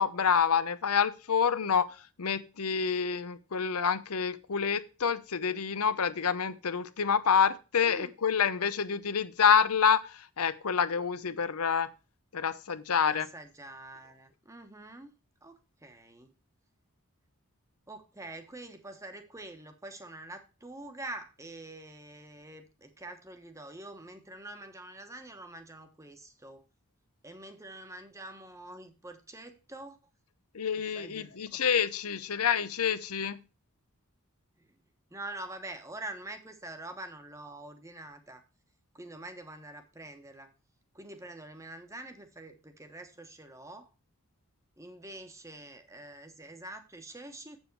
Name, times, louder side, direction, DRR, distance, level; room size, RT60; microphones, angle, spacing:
voice 1, 0.0-11.9 12.3-13.3 30.5-33.4, left 7 dB, 80° left, 14 dB, 0.7 m, -27 dB
voice 2, 7.8-8.1 13.1-15.1 15.4-16.3 17.9-26.7 27.2-30.0 30.7-31.6 34.6-34.7 35.1-38.4 38.9-40.5 40.9-43.9 44.8-47.6, right 2 dB, 15° right, 7 dB, 1.1 m, -45 dB
8.0 x 7.2 x 4.6 m, 0.31 s
head